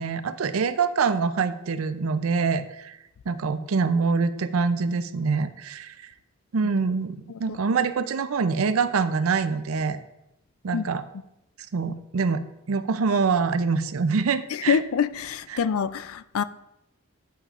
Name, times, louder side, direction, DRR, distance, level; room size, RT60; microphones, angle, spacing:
voice 1, 0.0-3.0 3.3-5.9 6.5-10.0 10.6-11.0 11.7-12.4 12.7-14.8 15.5-15.6, right 5 dB, 80° right, 0.5 m, -25 dB
voice 2, 14.5-16.4, left 7 dB, 80° left, 0.4 m, -25 dB
8.7 x 8.5 x 2.5 m
head